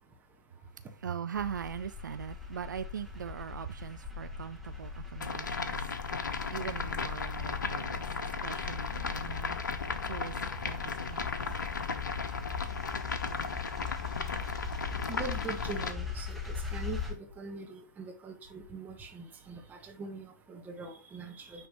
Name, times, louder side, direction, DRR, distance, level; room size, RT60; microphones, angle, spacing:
voice 1, 0.1-1.0 13.7-13.9 14.3-21.7, right 3 dB, 15° right, 1.3 m, -43 dB
voice 2, 1.0-5.9 6.5-8.1 8.4-9.6 10.0-11.3, right 8 dB, 70° right, 0.4 m, -40 dB
sound 1, 1.3-17.1, left 6 dB, ahead, 1.0 m, -40 dB
sound 2, 5.2-15.9, left 4 dB, 70° left, 0.9 m, -36 dB
9.5 x 3.3 x 3.0 m
figure-of-eight pair, 115°, 11 cm